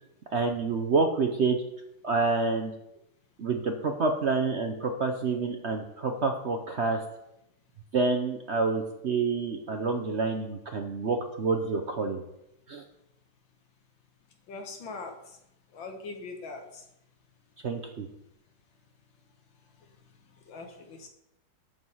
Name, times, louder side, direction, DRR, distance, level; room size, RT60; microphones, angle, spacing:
voice 1, 0.3-1.6 2.0-2.7 3.4-7.0 7.9-12.2 12.7-12.8 17.6-18.1, right 4 dB, 50° right, 4 dB, 0.8 m, -28 dB
voice 2, 14.5-15.2 15.7-16.8 20.5-21.1, left 3 dB, 85° left, 4 dB, 2.1 m, -41 dB
13.5 x 4.7 x 5.6 m, 0.84 s
omnidirectional pair, 2.0 m